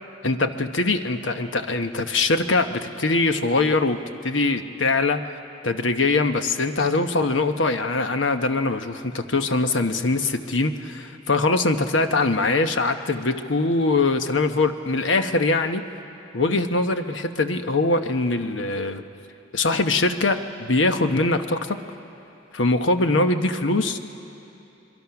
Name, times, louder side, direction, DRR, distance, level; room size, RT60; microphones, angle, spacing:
voice 1, 0.2-5.3 5.6-15.8 16.3-19.0 19.5-21.8 22.5-24.0, left 3 dB, 75° left, 8 dB, 1.0 m, -22 dB
25.5 x 23.0 x 5.9 m, 2.8 s
head